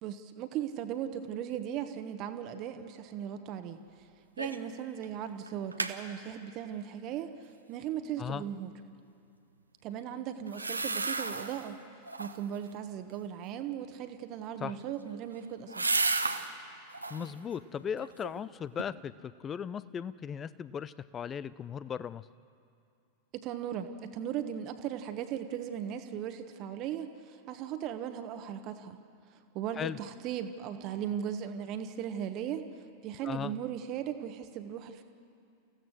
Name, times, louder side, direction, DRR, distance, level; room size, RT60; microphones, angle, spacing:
voice 1, 0.0-3.8 4.4-7.3 7.7-8.7 9.8-11.8 12.2-15.9 23.3-29.0 29.5-32.6 33.0-35.0, right 9 dB, 40° right, 8 dB, 1.2 m, -37 dB
sound 1, 4.4-4.7 5.0-5.1 5.5-6.0 10.5-11.7 12.1-12.6 14.5-16.5 16.9-17.3 17.8-18.5 18.8-18.9, right 3 dB, 80° right, 1.0 m, -33 dB
voice 2, 17.1-22.3 29.8-30.0 33.2-33.5, left 7 dB, 25° left, 17 dB, 0.6 m, -37 dB
29.0 x 16.0 x 6.5 m, 2.5 s
figure-of-eight pair, 90°, 0 cm